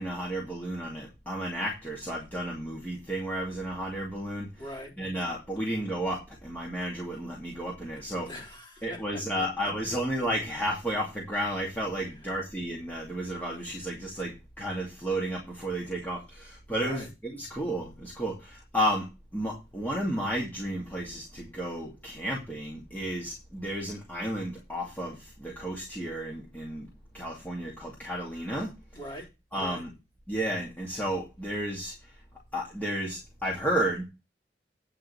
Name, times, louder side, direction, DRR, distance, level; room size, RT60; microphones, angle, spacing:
voice 1, 0.0-4.5 5.0-8.3 8.8-19.1 19.3-26.9 27.1-28.7 29.5-29.9 30.3-31.9 32.5-34.0, right 1 dB, 10° left, -3 dB, 2.4 m, -32 dB
voice 2, 4.6-4.9 8.3-9.7 12.1-12.4 16.8-17.1 28.9-29.3 29.5-29.8, left 1 dB, 30° left, -2 dB, 4.0 m, -43 dB
9.1 x 5.6 x 6.9 m, 0.26 s
head